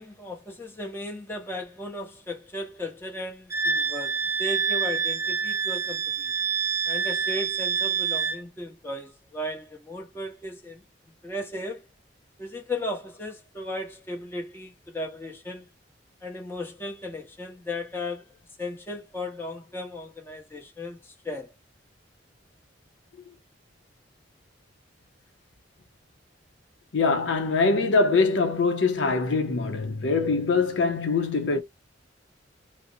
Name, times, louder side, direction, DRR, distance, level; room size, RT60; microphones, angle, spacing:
voice 1, 0.0-6.3 6.9-10.8 11.2-11.8 12.4-15.7 16.2-18.2 18.6-21.5, left 1 dB, 15° left, 0.8 m, -36 dB
Wind instrument woodwind instrument, 3.5-8.4, right 6 dB, 15° right, 0.4 m, -27 dB
voice 2, 26.9-31.6, left 4 dB, 80° left, 0.6 m, -23 dB
2.5 x 2.0 x 2.6 m
head